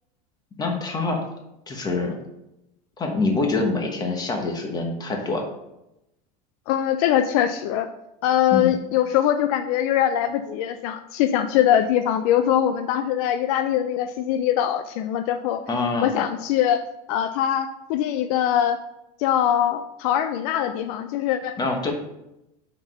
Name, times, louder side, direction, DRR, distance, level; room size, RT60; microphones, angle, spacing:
voice 1, 0.6-1.2 1.7-2.2 3.0-5.5 8.5-8.7 15.7-16.1 21.6-21.9, left 3 dB, 20° left, 3 dB, 1.3 m, -25 dB
voice 2, 6.7-7.9 8.2-15.6 16.0-16.8 17.1-18.8 19.2-21.6, left 10 dB, 70° left, 9 dB, 0.5 m, -22 dB
6.0 x 4.4 x 5.3 m, 0.89 s
supercardioid pair, 140°, 19 cm